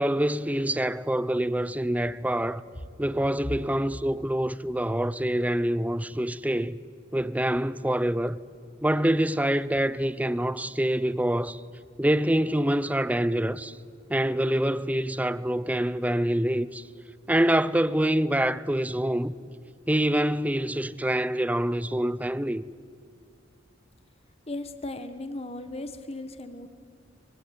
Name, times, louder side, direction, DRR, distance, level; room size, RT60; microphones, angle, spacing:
voice 1, 0.0-2.6 3.0-6.8 7.1-8.4 8.8-11.6 12.0-13.8 14.1-16.8 17.3-19.3 19.9-22.6, right 1 dB, 10° right, 0.6 m, -26 dB
voice 2, 24.5-26.7, left 2 dB, 30° left, 1.4 m, -36 dB
25.0 x 21.5 x 9.6 m
head